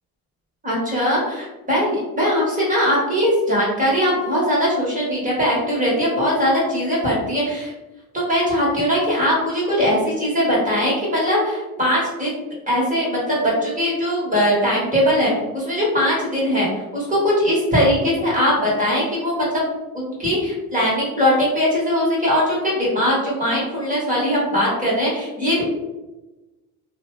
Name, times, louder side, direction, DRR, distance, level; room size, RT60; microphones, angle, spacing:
voice 1, 0.6-7.7 8.1-16.7 16.9-19.7 19.9-25.6, equal, 20° right, -6 dB, 1.5 m, -20 dB
2.8 x 2.4 x 3.1 m, 1.1 s
supercardioid pair, 90°, 36 cm